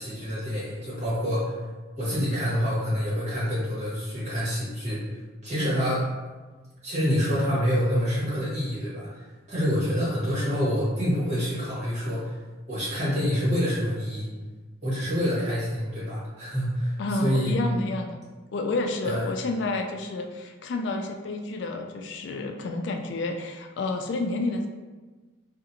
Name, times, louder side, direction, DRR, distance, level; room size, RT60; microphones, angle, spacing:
voice 1, 0.0-1.6 2.0-6.1 6.8-12.4 12.7-14.3 14.8-17.5 19.0-19.2, equal, 35° right, -9 dB, 1.5 m, -27 dB
voice 2, 17.0-18.2 18.5-24.7, left 2 dB, 65° left, 4 dB, 0.3 m, -30 dB
3.8 x 2.5 x 2.7 m, 1.3 s
head